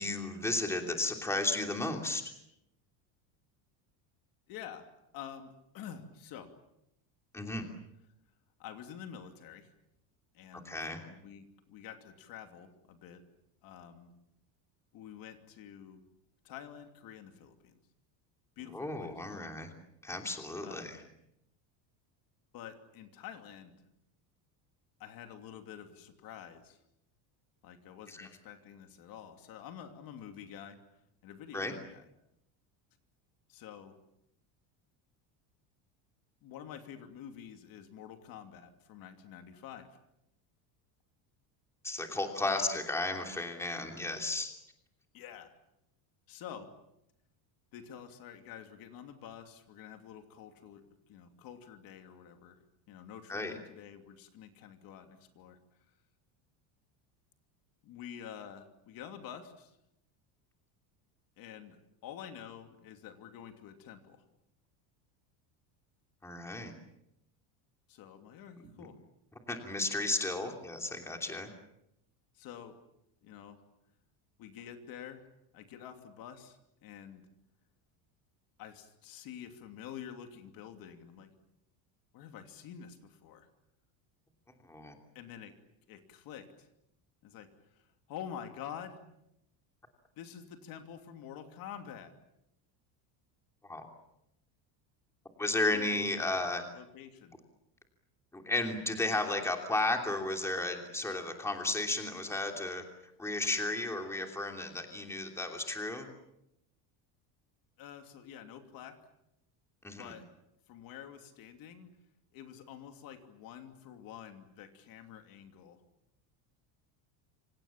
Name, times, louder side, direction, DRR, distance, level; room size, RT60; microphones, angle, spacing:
voice 1, 0.0-2.2 7.3-7.6 10.5-11.0 18.7-19.7 20.0-21.0 28.1-28.3 31.5-31.7 41.8-44.5 53.3-53.5 66.2-66.7 69.5-71.5 84.6-84.9 93.6-93.9 95.4-96.6 98.3-102.8 103.2-106.1 109.8-110.1, left 2 dB, 5° left, 3 dB, 3.0 m, -34 dB
voice 2, 4.5-6.5 8.6-9.7 10.3-13.2 13.6-14.1 14.9-16.0 16.4-17.8 18.6-19.3 20.6-21.1 22.5-23.8 25.0-26.8 27.6-30.8 31.2-32.1 33.5-34.0 36.4-40.0 42.4-42.9 45.1-45.5 46.3-46.7 47.7-52.6 52.9-55.6 57.8-59.8 61.4-64.2 67.9-69.0 72.3-72.8 73.2-73.6 74.4-75.2 75.5-77.2 78.6-81.3 82.1-83.5 85.1-85.5 85.9-86.7 87.2-89.0 90.2-92.1 95.7-96.4 96.7-97.4 107.8-109.0 110.0-110.2 110.7-111.9 112.3-115.8, left 9 dB, 45° left, 6 dB, 2.9 m, -48 dB
27.5 x 26.5 x 7.4 m, 0.82 s
cardioid pair, 170°, 47 cm